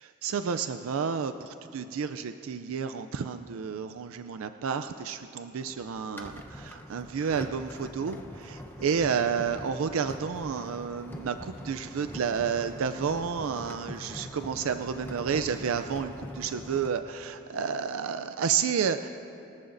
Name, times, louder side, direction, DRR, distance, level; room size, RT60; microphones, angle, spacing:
voice 1, 0.2-19.1, right 6 dB, 75° right, 9 dB, 0.4 m, -31 dB
sound 1, 5.6-16.9, equal, 10° left, 0.8 m, -43 dB
23.0 x 14.0 x 2.6 m, 3.0 s
head